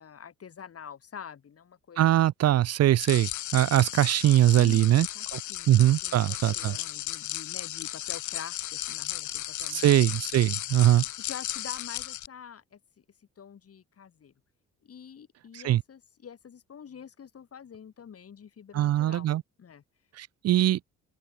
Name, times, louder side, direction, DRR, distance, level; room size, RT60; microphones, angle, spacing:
voice 1, 0.0-2.0 4.6-5.8 6.0-9.9 11.3-14.3 14.8-19.3 19.6-19.8, left 7 dB, 50° left, 6.6 m, -46 dB
voice 2, 2.0-5.1 5.3-5.4 5.7-6.7 9.7-11.0 15.6-15.8 18.7-19.4 20.2-20.8, right 13 dB, 55° right, 0.5 m, -22 dB
sound 1, 3.0-12.3, left 13 dB, 75° left, 2.5 m, -35 dB
open air
cardioid pair, 90°, 30 cm